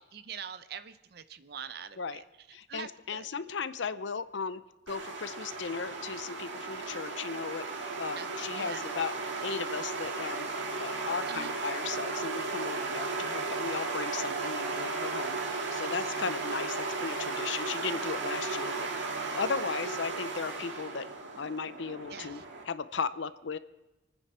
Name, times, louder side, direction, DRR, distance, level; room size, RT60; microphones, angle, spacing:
voice 1, 0.1-2.2 2.7-3.3 8.2-8.3 8.5-8.9 11.3-11.6 22.1-22.4, right 7 dB, 55° right, 12 dB, 0.6 m, -43 dB
voice 2, 2.5-4.6 4.9-7.6 8.0-9.1 9.4-10.5 10.8-15.4 15.7-21.1 21.4-23.6, left 5 dB, 80° left, 14 dB, 0.6 m, -36 dB
sound 1, 4.9-22.6, right 3 dB, 85° right, 1.9 m, -35 dB
27.5 x 9.7 x 4.3 m, 1.0 s
head